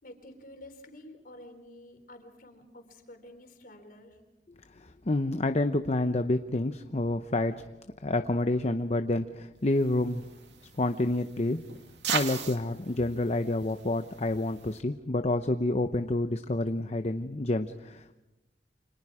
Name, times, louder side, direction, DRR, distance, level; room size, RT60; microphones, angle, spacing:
voice 1, 0.0-4.2, left 1 dB, 50° left, 5 dB, 4.1 m, -50 dB
voice 2, 4.8-7.6 8.0-10.3 10.8-11.6 12.1-18.1, left 2 dB, 35° left, 8 dB, 0.8 m, -28 dB
sound 1, 9.7-14.8, right 6 dB, 80° right, 2.4 m, -39 dB
30.0 x 26.0 x 4.9 m, 1.0 s
head